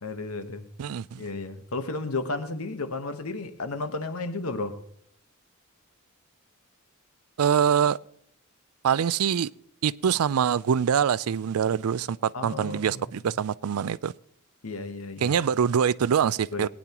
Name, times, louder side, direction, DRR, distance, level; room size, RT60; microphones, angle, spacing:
voice 1, 0.0-0.7 1.2-4.8 12.3-13.0 14.6-15.4 16.5-16.7, left 3 dB, 85° left, 1.2 m, -33 dB
voice 2, 0.8-1.3 7.4-8.0 8.8-9.5 9.8-14.1 15.2-16.7, right 8 dB, 85° right, 0.4 m, -24 dB
19.5 x 9.9 x 2.9 m
head